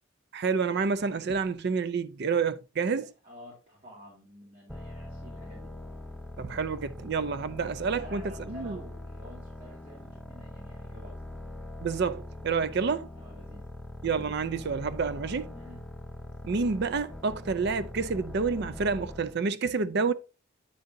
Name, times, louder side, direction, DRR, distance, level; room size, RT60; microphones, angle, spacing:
voice 1, 0.3-3.1 6.4-8.8 11.8-13.1 14.0-15.5 16.4-20.1, right 5 dB, 50° right, 0.4 m, -29 dB
voice 2, 3.2-5.7 8.0-11.2 13.2-13.6 15.5-15.8, left 1 dB, 30° right, 2.3 m, -50 dB
sound 1, 4.7-19.4, left 1 dB, ahead, 0.5 m, -42 dB
8.4 x 6.5 x 2.6 m
head